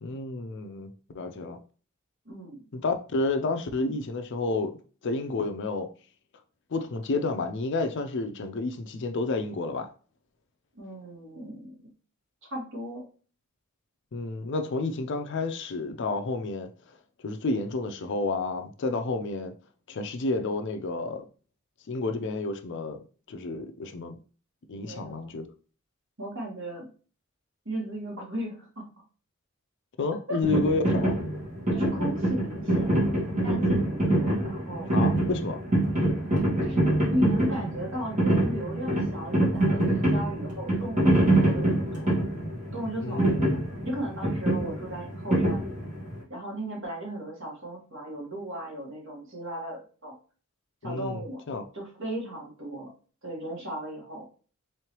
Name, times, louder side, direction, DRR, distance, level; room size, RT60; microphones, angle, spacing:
voice 1, 0.0-1.6 2.7-4.8 5.0-5.9 6.7-9.9 14.1-16.7 17.2-19.5 19.9-21.2 21.9-23.0 23.3-24.2 24.7-25.4 30.0-31.2 34.9-35.6 43.0-43.7 50.8-51.6, left 3 dB, 55° left, 0.5 m, -30 dB
voice 2, 2.2-2.7 10.7-11.8 12.5-13.1 24.8-25.3 26.2-26.9 27.6-28.9 30.3-30.4 30.9-31.0 31.7-33.0 33.4-34.9 36.6-42.1 42.7-43.4 43.8-45.7 46.3-50.1 50.8-51.4 51.7-52.9 53.2-54.3, right 1 dB, 60° right, 1.5 m, -36 dB
sound 1, 30.4-46.2, right 1 dB, 35° right, 1.7 m, -25 dB
3.7 x 3.2 x 2.9 m
head